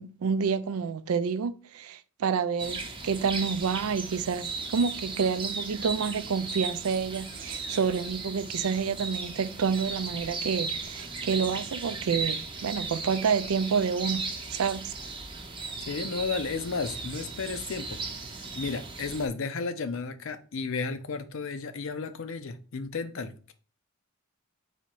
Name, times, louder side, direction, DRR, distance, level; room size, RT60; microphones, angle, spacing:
voice 1, 0.0-14.9, right 6 dB, 85° right, 0.4 m, -29 dB
sound 1, 2.6-19.3, right 4 dB, 25° right, 0.7 m, -36 dB
voice 2, 15.8-18.0 18.5-23.5, left 4 dB, 65° left, 0.6 m, -33 dB
4.2 x 2.8 x 4.5 m
head